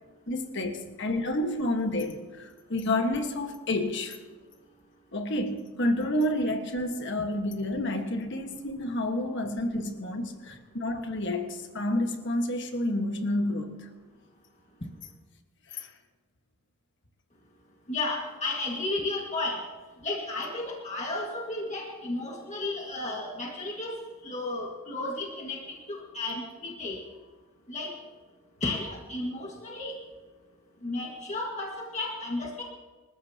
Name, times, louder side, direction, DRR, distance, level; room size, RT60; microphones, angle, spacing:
voice 1, 0.3-4.2 5.1-13.7 15.7-15.9, left 1 dB, 55° left, 5 dB, 1.5 m, -29 dB
voice 2, 17.9-19.6 20.0-23.9 24.2-27.0 27.7-27.9 28.6-30.0 30.8-32.6, left 2 dB, 30° left, -1 dB, 1.9 m, -33 dB
27.0 x 14.0 x 2.9 m, 1.3 s
head